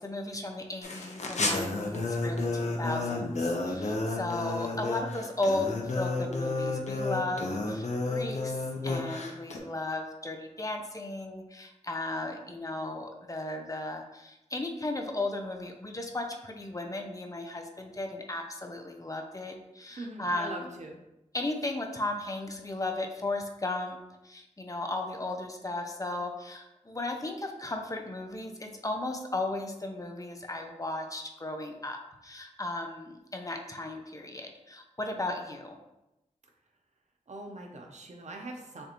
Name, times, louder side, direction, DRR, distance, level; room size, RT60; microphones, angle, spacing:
voice 1, 0.0-20.7 21.3-35.8, left 2 dB, 25° left, 4 dB, 0.6 m, -35 dB
sound 1, 0.8-9.6, left 2 dB, 65° left, 0.7 m, -31 dB
voice 2, 19.9-21.0 37.3-38.8, right 2 dB, 70° right, 1 dB, 0.8 m, -42 dB
6.7 x 2.6 x 3.0 m, 0.91 s
wide cardioid pair, 90°, 13 cm